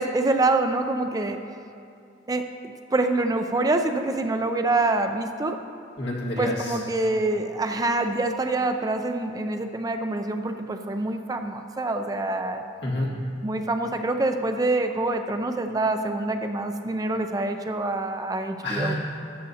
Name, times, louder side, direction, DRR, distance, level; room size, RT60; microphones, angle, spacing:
voice 1, 0.0-1.4 2.3-5.6 6.4-12.6 13.4-18.9, right 2 dB, 20° right, 6 dB, 0.4 m, -26 dB
voice 2, 6.0-6.8 12.8-13.1 18.6-18.9, left 1 dB, 90° left, -4 dB, 2.0 m, -28 dB
13.0 x 9.2 x 2.8 m, 2.5 s
head